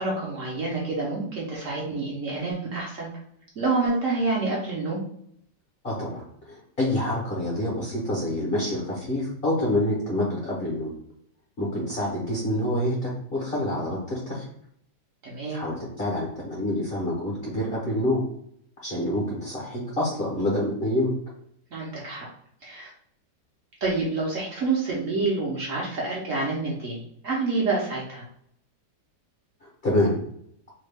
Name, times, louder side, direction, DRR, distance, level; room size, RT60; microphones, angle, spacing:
voice 1, 0.0-3.1 3.6-5.0 15.2-15.6 21.7-22.2 22.6-22.9 23.8-28.2, right 3 dB, 60° right, -4 dB, 1.0 m, -28 dB
voice 2, 5.8-10.9 11.6-14.5 15.5-18.2 18.8-21.1 29.6-30.2, left 1 dB, 45° left, -4 dB, 0.8 m, -27 dB
3.1 x 2.2 x 3.3 m, 0.69 s
omnidirectional pair, 1.8 m